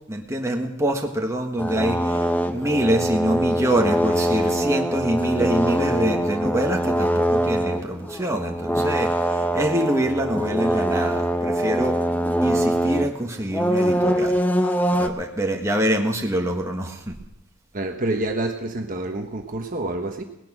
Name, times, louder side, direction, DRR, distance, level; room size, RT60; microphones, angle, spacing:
voice 1, 0.1-12.0 12.4-14.4 14.6-17.1, right 1 dB, 15° right, 1 dB, 1.4 m, -25 dB
sound 1, 1.6-13.1 13.5-15.1, equal, 10° left, 0.7 m, -23 dB
voice 2, 17.7-20.2, right 2 dB, 40° right, 4 dB, 1.2 m, -27 dB
18.5 x 10.5 x 6.1 m, 0.90 s
head